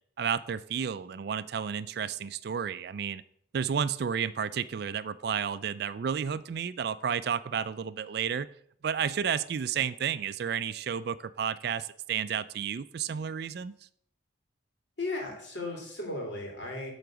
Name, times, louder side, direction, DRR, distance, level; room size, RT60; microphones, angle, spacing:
voice 1, 0.2-3.2 3.5-8.5 8.8-13.7, right 7 dB, 55° right, 15 dB, 0.3 m, -31 dB
voice 2, 15.0-16.9, left 2 dB, 65° left, 0 dB, 2.6 m, -35 dB
8.3 x 3.9 x 6.0 m, 0.65 s
head